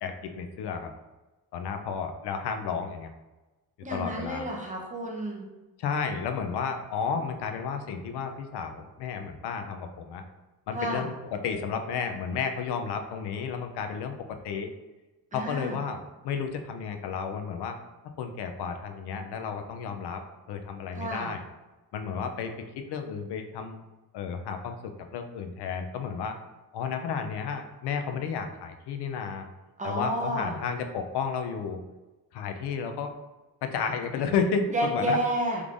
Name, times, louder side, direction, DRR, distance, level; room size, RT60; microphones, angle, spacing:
voice 1, 0.0-0.9 1.5-3.1 3.9-4.5 5.8-10.2 10.7-14.7 15.3-17.8 18.2-20.2 20.5-21.4 21.9-23.8 24.1-26.4 26.7-29.5 29.8-31.8 32.3-33.1 33.6-35.2, left 6 dB, 85° left, 5 dB, 0.5 m, -32 dB
voice 2, 3.8-5.5 10.7-11.1 15.3-15.8 20.9-21.3 29.8-30.6 34.7-35.6, right 1 dB, 20° right, -1 dB, 0.6 m, -30 dB
3.6 x 3.2 x 2.5 m, 1.1 s
wide cardioid pair, 145°, 39 cm